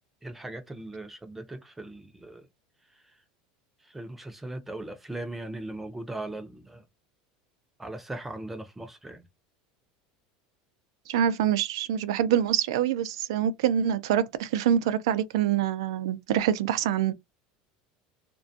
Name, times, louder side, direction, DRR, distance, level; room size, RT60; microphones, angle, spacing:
voice 1, 0.2-2.5 3.8-6.8 7.8-9.3, right 2 dB, 10° right, 0.4 m, -39 dB
voice 2, 11.1-17.1, right 10 dB, 90° right, 0.3 m, -25 dB
2.4 x 2.2 x 2.6 m
supercardioid pair, 140°, 3 cm